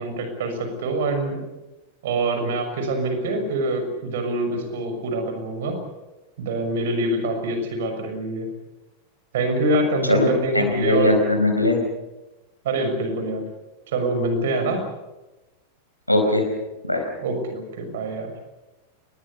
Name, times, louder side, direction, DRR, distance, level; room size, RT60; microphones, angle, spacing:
voice 1, 0.0-1.4 2.0-5.8 6.4-8.5 9.3-11.2 12.6-13.4 13.9-14.8 17.2-18.3, right 2 dB, 55° right, 6 dB, 6.3 m, -25 dB
voice 2, 10.1-11.8 16.1-16.5 16.8-17.1, left 2 dB, 90° left, 3 dB, 4.5 m, -20 dB
27.5 x 21.0 x 7.0 m, 1.1 s
figure-of-eight pair, 90°, 0 cm